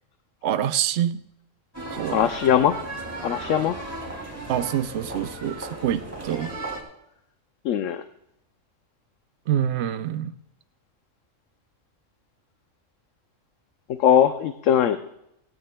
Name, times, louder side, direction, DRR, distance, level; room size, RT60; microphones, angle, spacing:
voice 1, 0.4-1.2 1.9-2.3 4.5-6.5 9.5-10.3, right 10 dB, 60° right, 12 dB, 0.8 m, -26 dB
sound 1, 1.7-6.8, right 2 dB, 10° right, 2.8 m, -35 dB
voice 2, 2.1-2.8 3.2-3.8 7.6-8.0 13.9-15.0, left 9 dB, 80° left, 9 dB, 1.0 m, -20 dB
18.5 x 17.5 x 2.2 m, 0.82 s
omnidirectional pair, 1.3 m